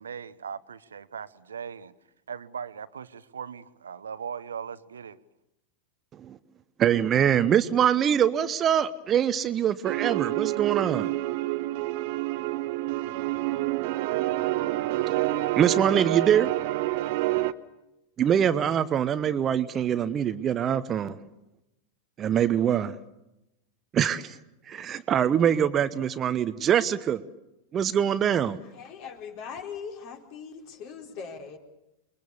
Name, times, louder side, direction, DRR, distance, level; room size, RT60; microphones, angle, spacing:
voice 1, 0.0-1.9 2.3-5.2, right 7 dB, 70° right, 1.0 m, -39 dB
voice 2, 6.8-11.1 15.1-15.2 15.6-16.5 18.2-21.2 22.2-23.0 23.9-24.4 24.7-27.2 27.7-28.6, right 9 dB, 25° right, 1.0 m, -24 dB
sound 1, 9.8-17.5, right 17 dB, 50° right, 1.2 m, -28 dB
voice 3, 28.7-31.6, left 6 dB, 45° left, 4.2 m, -40 dB
29.5 x 22.0 x 7.1 m
figure-of-eight pair, 90°, 0 cm